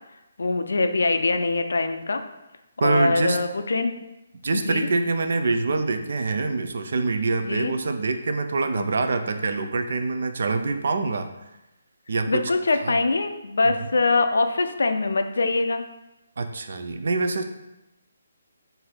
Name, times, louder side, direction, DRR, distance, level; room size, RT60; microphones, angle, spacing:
voice 1, 0.4-2.2 2.8-3.9 4.5-4.9 7.4-7.7 8.8-8.9 12.3-15.8, left 3 dB, 70° left, 8 dB, 0.4 m, -23 dB
voice 2, 2.8-3.4 4.4-11.3 12.1-12.4 12.7-12.9 13.6-13.9 16.4-17.4, right 3 dB, 60° right, 8 dB, 0.4 m, -25 dB
3.9 x 2.6 x 4.5 m, 0.96 s
figure-of-eight pair, 145°, 0 cm